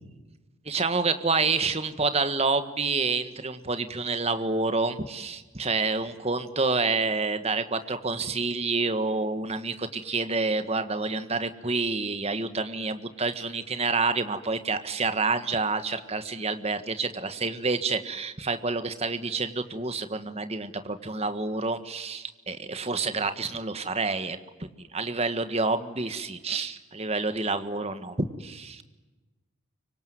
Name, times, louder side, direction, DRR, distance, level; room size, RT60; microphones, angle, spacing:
voice 1, 0.7-28.8, right 3 dB, 30° right, 9 dB, 1.6 m, -28 dB
25.0 x 24.5 x 9.4 m, 1.2 s
head